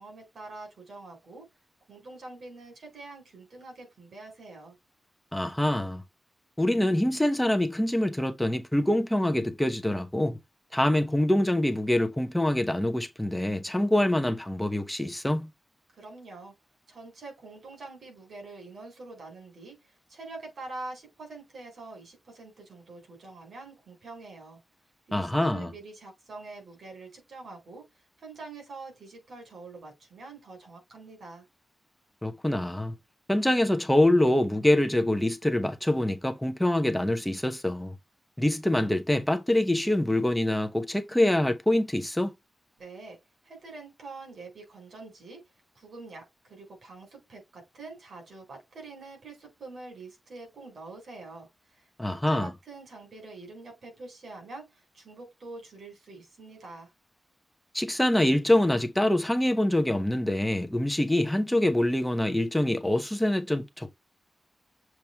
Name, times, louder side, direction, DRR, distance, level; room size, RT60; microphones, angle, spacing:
voice 1, 0.0-1.5 1.9-4.8 15.9-16.5 16.9-24.6 25.1-31.4 42.8-43.2 43.4-45.5 45.7-56.9, right 3 dB, 75° right, 4.0 m, -45 dB
voice 2, 5.3-6.0 6.6-10.4 10.7-15.5 25.1-25.7 32.2-33.0 33.3-37.9 38.4-42.3 52.0-52.5 57.7-63.9, left 1 dB, 5° left, 0.8 m, -25 dB
7.1 x 3.1 x 4.5 m
wide cardioid pair, 175°, 0 cm